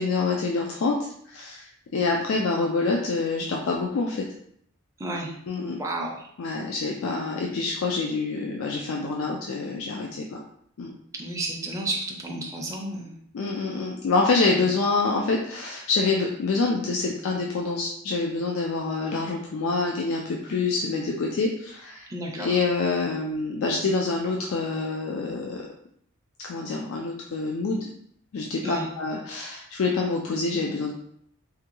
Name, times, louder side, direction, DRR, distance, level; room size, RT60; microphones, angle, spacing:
voice 1, 0.0-4.2 5.5-5.8 6.4-10.4 10.8-10.9 13.3-22.1 22.4-25.6 26.4-27.9 28.3-30.9, left 3 dB, 70° left, 0 dB, 0.4 m, -26 dB
voice 2, 5.0-5.3 5.8-6.3 11.1-13.2 22.1-22.6 28.6-28.9, right 2 dB, 15° right, -1 dB, 0.4 m, -32 dB
3.5 x 2.2 x 2.9 m, 0.68 s
head